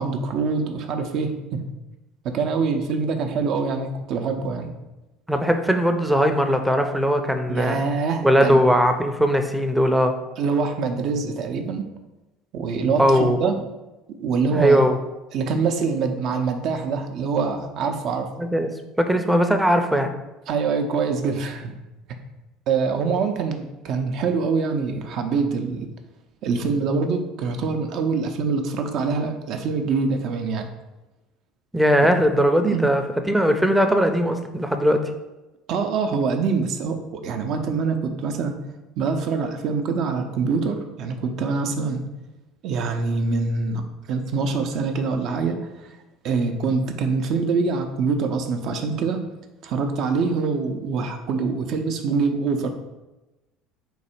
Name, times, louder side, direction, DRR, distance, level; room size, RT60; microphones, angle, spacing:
voice 1, 0.0-1.7 2.3-4.8 7.5-8.6 10.4-11.8 12.5-13.5 14.2-14.8 15.3-18.3 20.5-21.7 22.7-25.9 26.4-30.7 32.6-32.8 35.7-38.6 39.0-42.1 42.6-45.6 46.2-49.2 49.6-52.7, right 4 dB, 55° right, 6 dB, 0.5 m, -24 dB
voice 2, 5.3-7.8 8.2-10.1 13.0-13.5 14.5-15.0 18.4-20.1 31.7-35.1, equal, 5° right, 6 dB, 0.5 m, -19 dB
3.9 x 2.7 x 4.3 m, 1.0 s
figure-of-eight pair, 65°, 0 cm